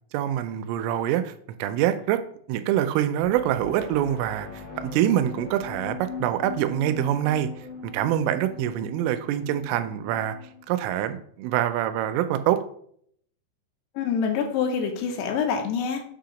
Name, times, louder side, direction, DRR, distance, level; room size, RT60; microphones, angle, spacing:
voice 1, 0.1-1.3 1.6-2.2 2.5-4.5 4.8-7.5 7.8-10.4 10.7-12.6, right 11 dB, 90° right, 9 dB, 3.2 m, -25 dB
sound 1, 3.2-10.8, left 5 dB, 40° left, 2.3 m, -40 dB
voice 2, 14.0-16.0, left 6 dB, 75° left, 3 dB, 2.6 m, -26 dB
7.5 x 2.8 x 5.1 m, 0.63 s
omnidirectional pair, 5.6 m